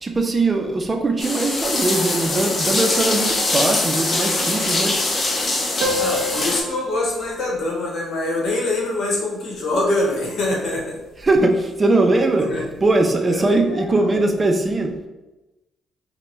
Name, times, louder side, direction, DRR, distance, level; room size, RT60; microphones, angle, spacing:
voice 1, 0.0-5.0 5.6-5.7 11.2-12.5 12.8-15.1, right 2 dB, 30° right, 4 dB, 0.4 m, -20 dB
sound 1, 1.2-6.6, left 2 dB, 40° left, 0.7 m, -22 dB
sound 2, 5.8-10.8, left 1 dB, 90° right, 0.5 m, -32 dB
voice 2, 6.0-11.0 12.5-12.6 13.3-14.2, left 2 dB, 65° left, -2 dB, 1.1 m, -24 dB
4.5 x 2.2 x 2.9 m, 1.0 s
cardioid pair, 90°, 0 cm